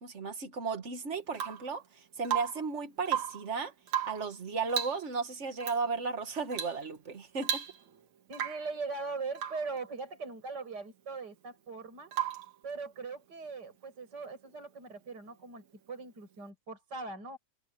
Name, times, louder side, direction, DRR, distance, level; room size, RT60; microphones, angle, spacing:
voice 1, 0.0-3.7 4.1-7.6, right 4 dB, 85° right, 0.6 m, -35 dB
Rain / Water tap faucet / Drip, 1.3-1.7 2.2-2.7 3.0-3.5 3.9-4.3 4.7-5.1 5.6-5.8 6.5-6.8 7.1-7.2 7.4-8.0 8.3-8.7 9.4-9.7 12.1-12.6 14.5-14.6, right 9 dB, 60° right, 3.2 m, -35 dB
voice 2, 8.3-12.1 12.6-17.4, right 4 dB, 30° right, 7.4 m, -40 dB
omnidirectional pair, 3.8 m